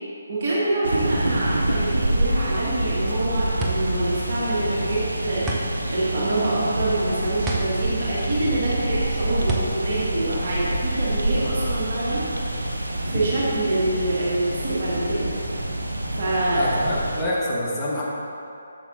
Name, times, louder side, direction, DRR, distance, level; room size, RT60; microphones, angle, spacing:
voice 1, 0.3-5.5 5.9-12.2 13.0-15.3 16.1-16.7, right 2 dB, 40° right, -8 dB, 2.0 m, -25 dB
sound 1, 0.8-17.2, right 1 dB, 70° right, 0.8 m, -27 dB
sound 2, 3.6-11.1, right 3 dB, 15° right, 0.7 m, -33 dB
voice 2, 16.5-18.0, left 1 dB, 10° left, -8 dB, 1.5 m, -26 dB
12.5 x 7.3 x 2.7 m, 2.6 s
figure-of-eight pair, 145°, 0 cm